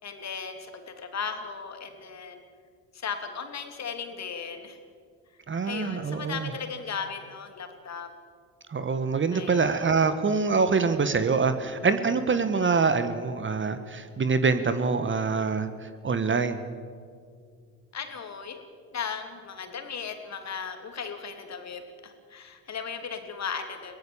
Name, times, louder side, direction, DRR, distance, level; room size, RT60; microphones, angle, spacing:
voice 1, 0.0-2.4 2.9-4.8 5.6-8.1 9.3-9.9 17.9-18.6 18.9-24.0, left 6 dB, 40° left, 6 dB, 3.0 m, -36 dB
voice 2, 5.5-6.5 8.7-16.6, right 4 dB, 30° right, 10 dB, 1.5 m, -25 dB
23.5 x 17.0 x 7.1 m, 2.1 s
hypercardioid pair, 60°, 41 cm